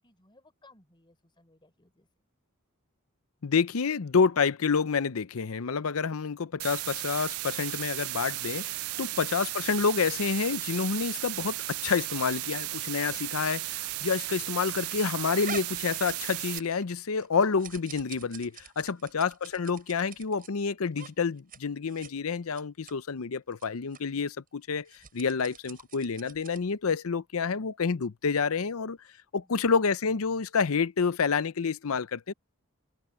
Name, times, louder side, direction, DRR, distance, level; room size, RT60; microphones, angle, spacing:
voice 1, 0.0-2.1 8.9-9.3 13.0-13.2 18.9-19.2 29.4-29.8, left 2 dB, 25° left, 4.0 m, -60 dB
voice 2, 3.4-29.0 29.3-32.3, left 5 dB, 85° left, 0.7 m, -28 dB
sound 1, 6.6-16.6, right 18 dB, 85° right, 0.4 m, -35 dB
sound 2, 15.4-16.9 17.2-20.5 20.9-21.1 21.4-21.6 21.9-22.1 22.5-22.9 23.5-23.7 23.9-24.0 24.8-26.7, right 7 dB, 45° right, 6.9 m, -45 dB
head